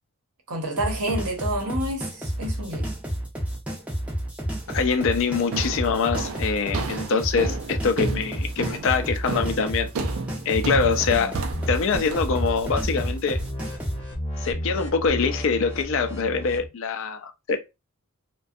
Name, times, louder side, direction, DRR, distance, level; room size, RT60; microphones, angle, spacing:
voice 1, 0.5-2.9, right 1 dB, 90° right, 0.8 m, -29 dB
sound 1, 0.8-14.0, right 1 dB, 5° right, 0.4 m, -30 dB
voice 2, 4.7-9.9 10.5-11.3 11.7-13.4 14.4-17.6, left 5 dB, 60° left, 0.4 m, -24 dB
sound 2, 4.7-5.0 5.5-13.5, right 3 dB, 70° right, 0.4 m, -33 dB
sound 3, 10.8-11.8 12.2-12.5 12.8-13.1 13.4-16.7, equal, 25° left, 0.7 m, -32 dB
2.6 x 2.2 x 2.3 m
head